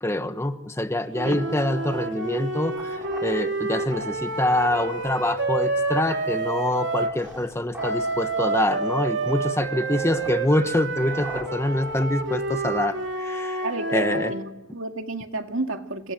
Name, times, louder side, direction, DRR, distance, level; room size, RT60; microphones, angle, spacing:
voice 1, 0.0-14.3, left 1 dB, 15° left, 1.2 m, -25 dB
sound 1, 1.1-13.1, equal, 10° right, 4.0 m, -45 dB
sound 2, 1.1-7.2 7.8-14.4, right 3 dB, 55° right, 3.4 m, -28 dB
voice 2, 13.6-16.1, right 2 dB, 75° right, 2.1 m, -31 dB
27.5 x 26.5 x 7.7 m
head